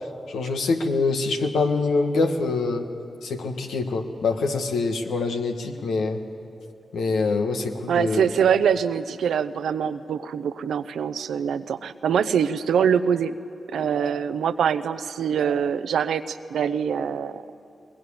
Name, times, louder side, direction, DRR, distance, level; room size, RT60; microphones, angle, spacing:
voice 1, 0.3-2.8 3.2-6.2 6.9-8.2, left 3 dB, 90° left, 4 dB, 1.5 m, -25 dB
voice 2, 7.9-13.3 13.7-17.4, right 7 dB, 85° right, 12 dB, 0.7 m, -24 dB
21.5 x 20.5 x 8.8 m, 2.6 s
supercardioid pair, 40°, 0 cm